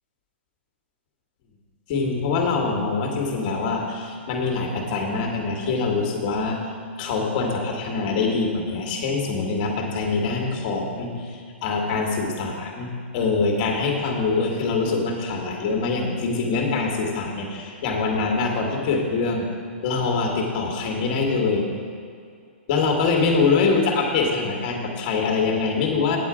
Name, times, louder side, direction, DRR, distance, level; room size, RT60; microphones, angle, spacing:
voice 1, 1.9-6.6 7.0-12.9 13.1-19.5 19.8-21.6 22.7-26.2, left 4 dB, 35° left, 1 dB, 1.5 m, -24 dB
8.7 x 8.1 x 4.9 m, 2.3 s
hypercardioid pair, 155°, 7 cm